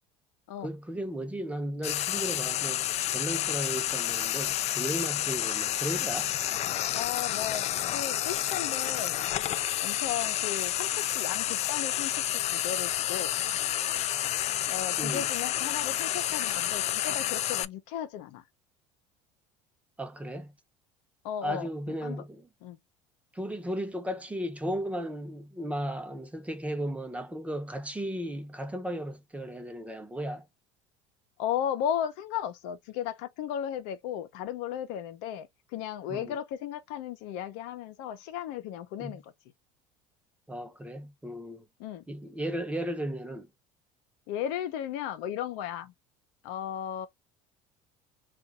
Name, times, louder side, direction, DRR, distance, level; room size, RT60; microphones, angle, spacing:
voice 1, 0.6-2.9 3.1-6.3 15.0-15.3 20.0-20.5 21.4-22.5 23.3-30.5 36.1-36.4 39.0-39.2 40.5-41.6 42.1-43.5, equal, 10° right, 0.9 m, -35 dB
Frying (food), 1.8-17.6, left 12 dB, 45° left, 0.4 m, -30 dB
voice 2, 6.9-7.7 7.9-9.2 9.8-13.3 14.7-18.4 21.2-22.2 22.6-22.8 31.4-39.3 41.8-42.0 44.3-45.9 46.4-47.1, left 10 dB, 75° left, 0.7 m, -35 dB
2.6 x 2.5 x 3.7 m
supercardioid pair, 85°, 15 cm